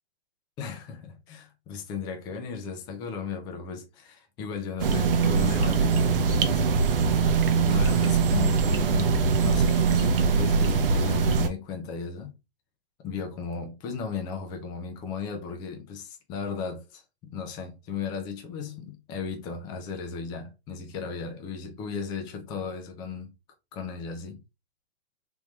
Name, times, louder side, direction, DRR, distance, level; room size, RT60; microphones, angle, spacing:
voice 1, 0.6-6.7 7.6-12.4 13.0-23.3 23.7-24.4, left 5 dB, 15° left, 0.5 m, -36 dB
sound 1, 4.8-11.5, right 5 dB, 60° right, 0.8 m, -22 dB
3.6 x 3.0 x 3.0 m
hypercardioid pair, 150°, 31 cm